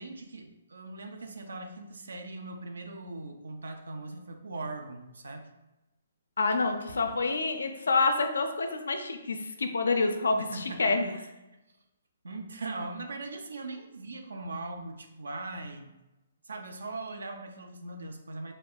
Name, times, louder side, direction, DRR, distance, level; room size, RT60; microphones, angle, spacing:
voice 1, 0.0-5.5 10.4-11.3 12.2-15.9 16.4-18.5, right 2 dB, 75° right, 4 dB, 0.4 m, -40 dB
voice 2, 6.4-11.2, left 3 dB, 75° left, 6 dB, 0.4 m, -27 dB
4.3 x 2.9 x 2.2 m, 0.99 s
figure-of-eight pair, 130°, 0 cm